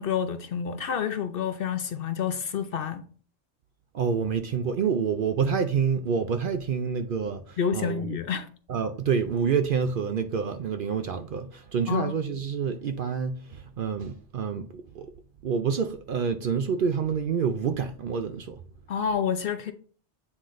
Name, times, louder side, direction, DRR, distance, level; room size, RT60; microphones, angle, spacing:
voice 1, 0.0-3.0 7.6-8.5 11.9-12.1 18.9-19.7, left 7 dB, 60° left, 0.7 m, -28 dB
voice 2, 3.9-8.2 8.7-15.1 15.4-18.6, right 6 dB, 60° right, 0.6 m, -28 dB
8.4 x 3.8 x 3.1 m
omnidirectional pair, 1.2 m